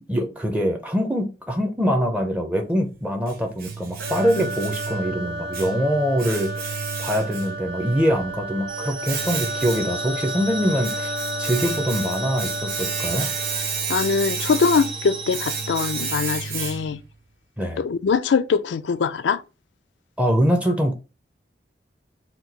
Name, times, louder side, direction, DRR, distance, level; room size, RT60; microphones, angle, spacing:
voice 1, 0.1-13.3 17.6-17.8 20.2-20.9, equal, 10° right, 0.5 m, -24 dB
Domestic sounds home sounds, 2.7-17.1, right 6 dB, 60° right, 0.8 m, -32 dB
sound 1, 4.0-13.9, right 1 dB, 85° right, 0.7 m, -33 dB
sound 2, 8.7-16.1, right 4 dB, 30° right, 0.8 m, -34 dB
voice 2, 13.9-17.0 17.8-19.4, left 5 dB, 90° left, 0.4 m, -22 dB
4.3 x 2.3 x 3.9 m
head